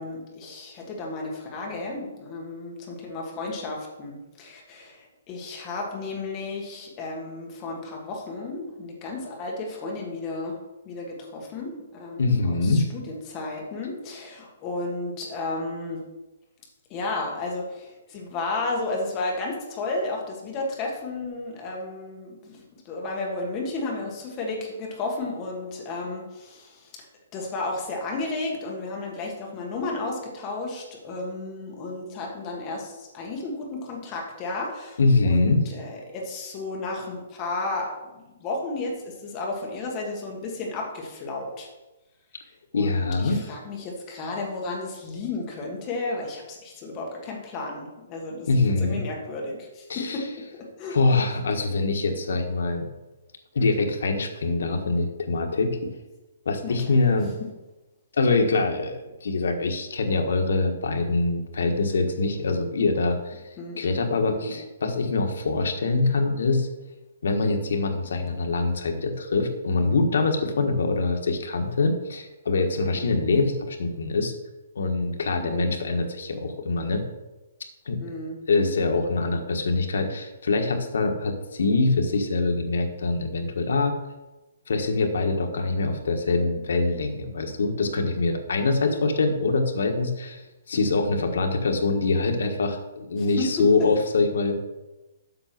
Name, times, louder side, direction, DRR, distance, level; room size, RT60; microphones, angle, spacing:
voice 1, 0.0-10.6 10.8-16.0 16.9-27.1 27.3-41.7 42.4-48.5 48.8-50.3 50.5-51.2 56.6-56.9 63.6-63.8 64.3-64.6 73.0-73.2 75.4-75.7 78.0-78.4 88.8-89.1 93.2-93.7, left 2 dB, 20° left, 0 dB, 1.5 m, -33 dB
voice 2, 12.2-12.9 35.0-35.6 42.7-43.4 48.5-49.0 49.9-50.2 50.9-52.8 53.5-55.9 56.4-57.3 58.1-63.4 63.8-66.7 67.2-74.3 74.7-77.0 77.8-78.0 78.5-84.0 84.7-90.4 90.7-94.6, left 3 dB, 75° left, 4 dB, 1.5 m, -24 dB
7.8 x 6.0 x 6.0 m, 1.1 s
hypercardioid pair, 175°, 0 cm